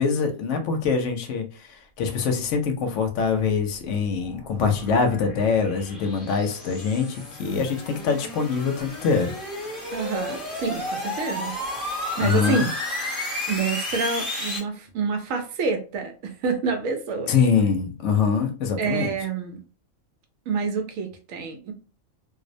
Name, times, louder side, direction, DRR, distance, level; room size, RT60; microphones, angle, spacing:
voice 1, 0.0-1.4 2.0-7.1 7.4-9.3 12.2-12.7 17.3-19.1, left 5 dB, 70° left, 0.9 m, -23 dB
sound 1, 3.6-14.6, left 1 dB, ahead, 0.5 m, -33 dB
voice 2, 9.9-11.6 12.1-12.7 13.5-17.4 18.8-19.6 20.5-21.7, right 5 dB, 85° right, 1.0 m, -27 dB
2.5 x 2.0 x 2.5 m
omnidirectional pair, 1.4 m